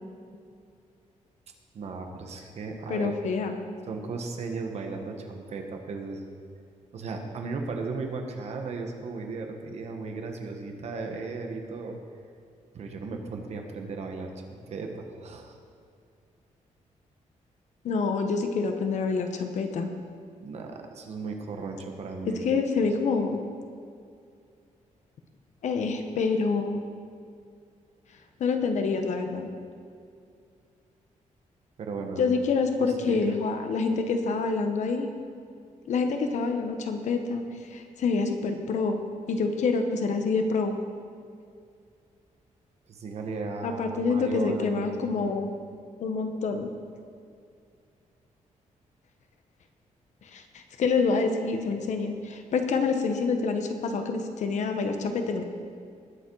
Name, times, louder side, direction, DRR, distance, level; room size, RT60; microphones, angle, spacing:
voice 1, 1.7-3.1 3.9-6.2 6.9-12.0 12.7-15.6 20.4-22.6 31.8-32.4 32.8-33.2 42.9-45.3, right 4 dB, 55° right, 3 dB, 1.4 m, -36 dB
voice 2, 2.9-3.6 17.8-19.9 22.4-23.4 25.6-26.8 28.4-29.5 32.2-35.1 35.9-37.4 37.7-39.0 39.3-40.8 43.6-45.5 46.0-46.7 50.3-55.4, left 4 dB, 65° left, 5 dB, 1.2 m, -27 dB
20.0 x 7.3 x 4.8 m, 2.3 s
wide cardioid pair, 165°, 13 cm